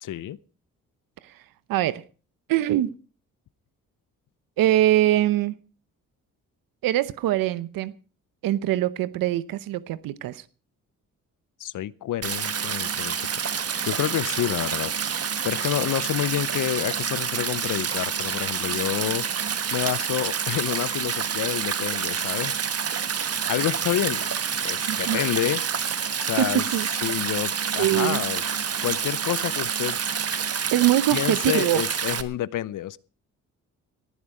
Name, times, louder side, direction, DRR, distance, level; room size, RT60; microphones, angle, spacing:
voice 1, 0.0-0.4 11.6-13.2 13.5-13.6 13.8-14.9 15.4-19.3 19.7-22.6 23.5-24.3 24.6-26.6 27.0-28.4 28.8-30.0 31.1-33.0, left 12 dB, 65° left, 0.7 m, -28 dB
voice 2, 1.7-2.0 2.5-2.9 4.6-5.5 6.8-7.9 8.4-10.4 24.9-25.2 26.4-26.9 27.8-28.2 30.7-31.8, right 13 dB, 90° right, 0.8 m, -23 dB
Stream, 12.2-32.2, right 7 dB, 45° right, 1.4 m, -28 dB
19.0 x 11.0 x 4.9 m
cardioid pair, 85°, 33 cm